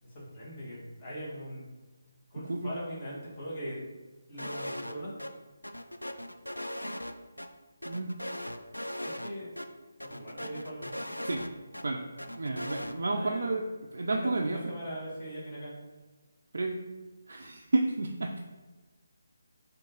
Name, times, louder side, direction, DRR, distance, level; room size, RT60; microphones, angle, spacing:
voice 1, 0.0-1.7 2.3-4.0 4.3-5.1 9.0-9.5 10.0-10.9 13.1-13.6 14.0-15.7, equal, 25° left, -7 dB, 1.4 m, -41 dB
sound 1, 4.4-4.9 5.2-5.3 5.6-7.5 7.8-9.3 9.6-9.7 10.0-11.8 12.2-12.9, left 1 dB, 90° left, 0.3 m, -38 dB
voice 2, 12.4-13.6 13.9-14.6 16.5-16.8 17.3-18.4, right 2 dB, 60° right, 2 dB, 0.3 m, -30 dB
3.6 x 2.5 x 3.8 m, 1.2 s
figure-of-eight pair, 150°, 0 cm